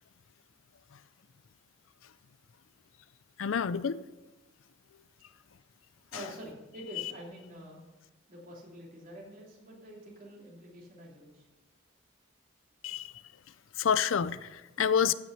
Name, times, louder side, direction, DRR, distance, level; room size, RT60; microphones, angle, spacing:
voice 1, 3.4-4.0 12.8-13.1 13.8-15.1, left 7 dB, 85° left, 16 dB, 0.5 m, -28 dB
voice 2, 6.1-7.8 8.3-11.5, equal, 45° right, -3 dB, 3.1 m, -47 dB
15.5 x 6.2 x 5.8 m, 1.1 s
head